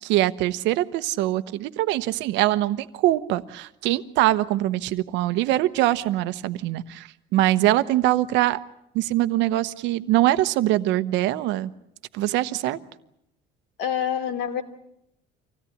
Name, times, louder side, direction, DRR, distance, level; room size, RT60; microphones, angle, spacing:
voice 1, 0.0-8.6 8.9-11.7 12.1-12.8, right 15 dB, 75° right, 13 dB, 1.0 m, -23 dB
voice 2, 13.8-14.6, left 8 dB, 65° left, 6 dB, 2.6 m, -26 dB
25.5 x 17.0 x 10.0 m, 0.80 s
cardioid pair, 155°, 19 cm